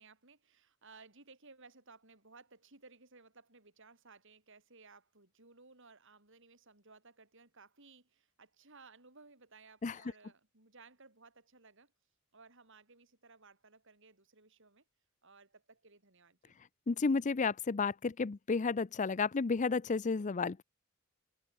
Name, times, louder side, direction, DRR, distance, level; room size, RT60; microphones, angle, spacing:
voice 1, 0.0-11.9 12.3-14.9 15.2-16.6, right 4 dB, 60° right, 5.7 m, -59 dB
voice 2, 16.9-20.6, left 4 dB, 35° left, 0.5 m, -32 dB
head